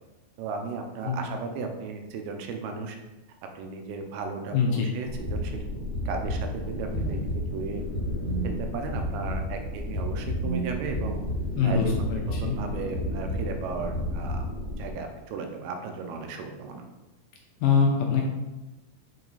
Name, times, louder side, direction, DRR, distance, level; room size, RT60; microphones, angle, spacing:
voice 1, 0.4-3.0 3.6-5.6 6.1-7.8 8.4-11.3 11.6-14.5 14.8-16.8, right 4 dB, 85° right, 4 dB, 2.7 m, -35 dB
voice 2, 4.5-4.9 11.6-12.6 17.6-18.2, left 5 dB, 75° left, 1 dB, 2.1 m, -24 dB
sound 1, 5.1-14.9, equal, 15° right, 0.7 m, -31 dB
5.8 x 4.6 x 4.0 m, 1.1 s
omnidirectional pair, 4.4 m